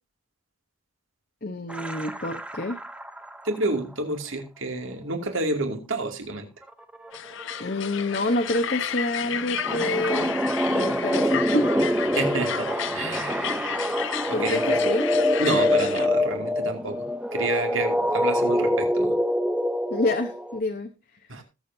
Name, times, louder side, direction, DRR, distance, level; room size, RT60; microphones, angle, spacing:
voice 1, 1.4-2.8 7.6-10.3 10.7-11.7 12.3-12.4 14.3-15.1 19.9-20.9 21.3-21.4, left 2 dB, 45° left, 6 dB, 0.9 m, -28 dB
sound 1, 1.7-3.6 6.6-6.7 6.9-20.6, left 1 dB, 5° right, 0.7 m, -25 dB
voice 2, 3.4-6.5 12.2-13.5 14.3-14.8 15.4-19.1 21.3-21.4, right 2 dB, 65° right, 4 dB, 2.5 m, -29 dB
sound 2, 7.1-16.1, left 9 dB, 60° left, 0.6 m, -32 dB
20.0 x 7.3 x 2.7 m, 0.26 s
head